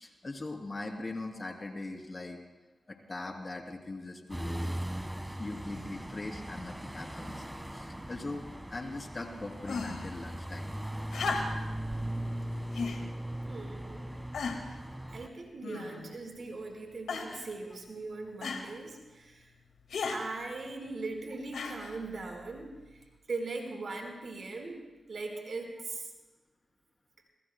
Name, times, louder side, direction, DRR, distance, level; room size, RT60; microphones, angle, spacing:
voice 1, 0.0-2.4 2.9-4.7 5.2-7.5 7.7-8.4 8.7-10.7, left 2 dB, 40° left, 2 dB, 3.1 m, -40 dB
sound 1, 4.3-15.3, right 1 dB, 10° right, 1.4 m, -39 dB
sound 2, 9.6-10.1 11.1-11.8 12.7-13.0 13.8-13.9 14.3-14.8 15.6-16.2 17.1-17.5 18.4-18.7 19.9-20.2 21.5-22.0 23.0-23.1, left 4 dB, 80° left, 1.9 m, -35 dB
voice 2, 13.5-14.1 15.1-19.5 20.1-24.8 25.1-26.1, right 3 dB, 65° right, 2 dB, 4.3 m, -40 dB
26.0 x 21.5 x 2.2 m, 1.2 s
supercardioid pair, 40°, 0 cm